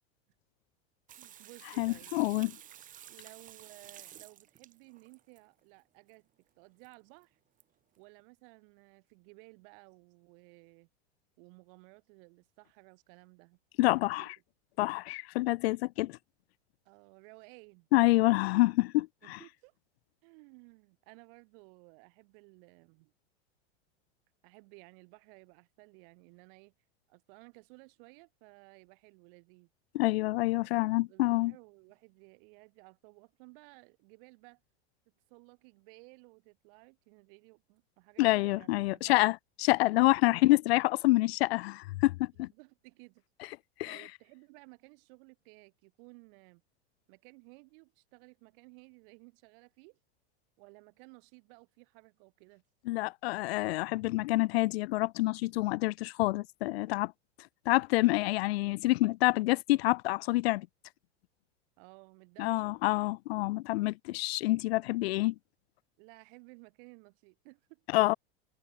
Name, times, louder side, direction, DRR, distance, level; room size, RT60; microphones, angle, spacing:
Water tap faucet / Sink (filling or washing), 1.1-5.4 6.8-6.9 7.2-7.3 7.6-7.7, right 11 dB, 25° right, 1.1 m, -52 dB
voice 1, 1.2-2.1 3.1-6.3 6.6-7.4 8.0-10.9 11.4-13.6 14.0-14.3 16.8-17.9 19.2-19.7 20.2-23.1 24.4-26.7 27.1-29.7 30.4-30.8 31.1-34.6 35.3-39.3 40.3-40.5 42.3-43.2 43.9-46.6 47.1-50.0 50.6-52.6 61.8-62.8 64.4-64.6 66.0-67.9, right 33 dB, 55° right, 4.4 m, -56 dB
voice 2, 1.8-2.5 13.8-14.3 14.8-16.2 17.9-19.4 29.9-31.5 38.2-42.3 43.8-44.0 52.9-57.1 57.7-60.7 62.4-65.3 67.9-68.1, left 20 dB, 70° left, 0.7 m, -27 dB
supercardioid pair, 135°, 32 cm